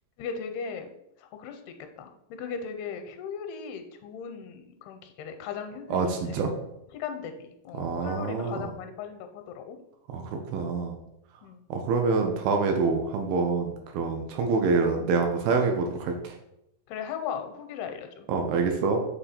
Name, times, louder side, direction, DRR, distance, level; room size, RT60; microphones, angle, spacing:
voice 1, 0.2-0.9 1.2-6.0 6.3-6.4 6.9-9.8 11.4-11.6 16.9-18.3, left 6 dB, 85° left, 6 dB, 2.6 m, -37 dB
voice 2, 5.9-6.5 7.8-8.7 10.1-11.0 11.7-16.4 18.3-19.0, right 4 dB, 75° right, 3 dB, 2.4 m, -26 dB
6.9 x 3.7 x 4.2 m, 0.83 s
omnidirectional pair, 4.6 m